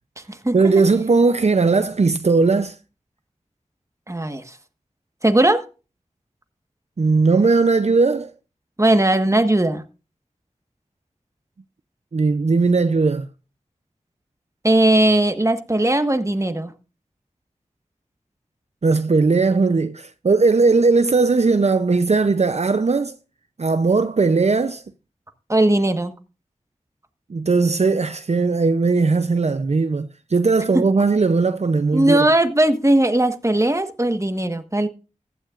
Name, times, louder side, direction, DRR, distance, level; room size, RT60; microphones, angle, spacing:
voice 1, 0.5-2.8 7.0-8.3 12.1-13.3 18.8-23.2 23.6-24.8 27.3-32.3, right 4 dB, 60° right, 0.6 m, -18 dB
voice 2, 4.1-4.4 5.2-5.6 8.8-9.8 14.6-16.7 25.5-26.1 30.7-30.8 31.9-34.9, right 1 dB, 25° right, 1.4 m, -18 dB
15.0 x 12.0 x 2.5 m
wide cardioid pair, 55°, 13 cm